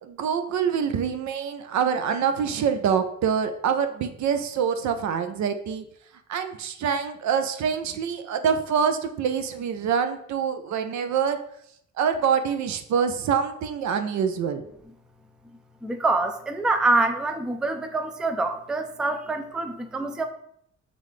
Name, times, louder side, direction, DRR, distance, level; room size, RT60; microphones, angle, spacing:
voice 1, 0.0-5.8 6.3-11.4 12.0-14.7, right 7 dB, 65° right, 8 dB, 0.6 m, -25 dB
voice 2, 15.8-20.3, right 2 dB, 5° right, 6 dB, 0.3 m, -25 dB
5.6 x 2.5 x 3.2 m, 0.72 s
cardioid pair, 90°, 30 cm